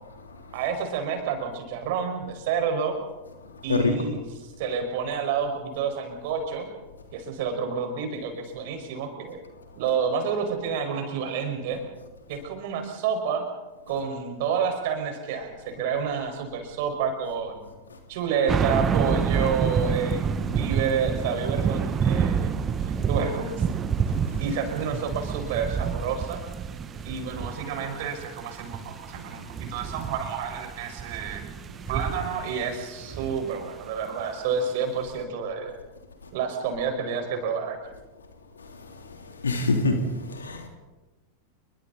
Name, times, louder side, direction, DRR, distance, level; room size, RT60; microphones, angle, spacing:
voice 1, 0.5-3.0 3.6-6.7 7.1-9.4 9.7-11.8 12.3-13.4 13.9-17.6 18.1-22.5 22.8-23.7 24.4-26.4 27.0-31.4 31.9-35.8 36.3-37.8, right 6 dB, 50° right, 5 dB, 5.0 m, -29 dB
sound 1, 18.5-33.7 34.2-34.3, right 6 dB, 25° right, 1.1 m, -28 dB
voice 2, 39.4-40.7, left 3 dB, 70° left, 4 dB, 3.2 m, -24 dB
29.5 x 23.0 x 4.1 m, 1.1 s
figure-of-eight pair, 90°, 0 cm